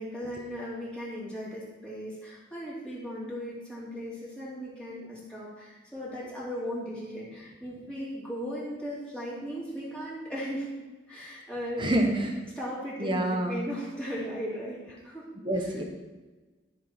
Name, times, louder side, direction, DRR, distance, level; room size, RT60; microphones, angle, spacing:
voice 1, 0.0-10.7 11.1-11.9 12.6-15.2 15.6-15.7, equal, 5° left, -8 dB, 2.9 m, -37 dB
voice 2, 11.8-12.4 13.0-13.6 15.4-15.8, right 1 dB, 25° right, 3 dB, 1.3 m, -27 dB
13.0 x 6.6 x 4.6 m, 1.2 s
head